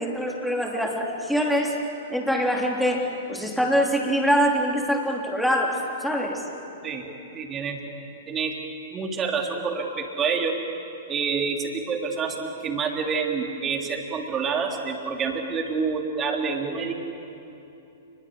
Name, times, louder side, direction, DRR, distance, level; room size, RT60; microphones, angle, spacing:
voice 1, 0.0-1.7 2.1-6.4, equal, ahead, 0 dB, 3.6 m, -24 dB
voice 2, 7.3-7.8 8.3-8.6 8.9-10.6 11.1-17.0, right 5 dB, 25° right, 2 dB, 3.5 m, -27 dB
29.0 x 21.5 x 7.9 m, 3.0 s
figure-of-eight pair, 105°, 0 cm